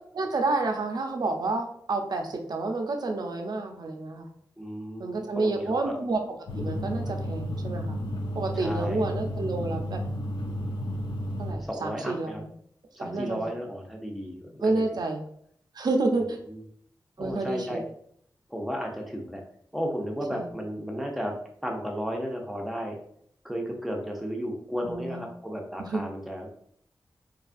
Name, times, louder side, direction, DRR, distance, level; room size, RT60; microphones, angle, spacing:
voice 1, 0.1-4.3 5.0-6.2 6.5-8.0 8.3-10.0 11.4-12.5 13.0-13.4 14.6-15.2 15.8-16.4 17.2-17.8 20.3-20.5 24.9-25.3 25.8-26.0, right 3 dB, 60° right, 3 dB, 0.5 m, -29 dB
voice 2, 4.6-6.0 8.5-9.0 11.6-12.4 13.0-14.7 16.5-16.6 17.2-17.8 18.5-19.4 19.7-21.3 21.6-23.0 23.4-26.5, equal, ahead, 0 dB, 0.5 m, -34 dB
sound 1, 6.5-11.5, equal, 80° left, 0.4 m, -32 dB
2.7 x 2.3 x 2.5 m, 0.66 s
wide cardioid pair, 95°, 8 cm